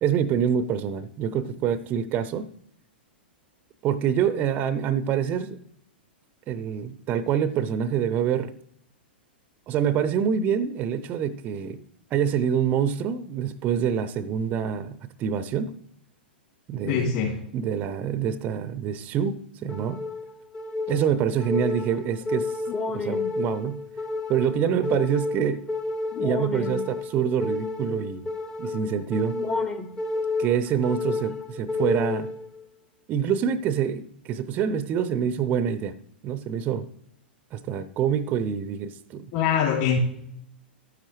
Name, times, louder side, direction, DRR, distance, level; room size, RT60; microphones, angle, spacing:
voice 1, 0.0-2.5 3.8-5.6 6.5-8.5 9.7-11.8 12.1-15.7 16.7-17.2 17.5-20.0 20.9-22.5 22.9-23.8 24.3-25.6 26.2-28.3 28.6-29.4 30.4-32.3 33.1-35.9 36.2-36.9 37.5-39.3, right 8 dB, 30° right, 15 dB, 0.5 m, -26 dB
voice 2, 16.9-17.4 39.3-40.0, left 7 dB, 45° left, -5 dB, 2.8 m, -23 dB
sound 1, 19.7-32.7, left 3 dB, 15° left, 0.7 m, -30 dB
12.0 x 9.8 x 3.2 m, 0.70 s
figure-of-eight pair, 100°, 6 cm